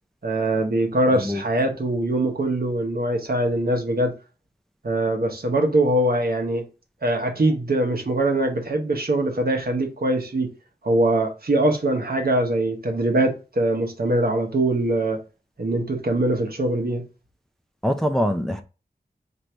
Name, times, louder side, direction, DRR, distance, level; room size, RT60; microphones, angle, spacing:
voice 1, 0.2-4.1 4.8-6.6 7.0-10.5 10.8-15.2 15.6-17.0, right 1 dB, 60° right, 1.0 m, -22 dB
voice 2, 1.1-1.4 17.8-18.6, equal, ahead, 0.5 m, -24 dB
3.1 x 2.6 x 4.4 m
wide cardioid pair, 50°, 17 cm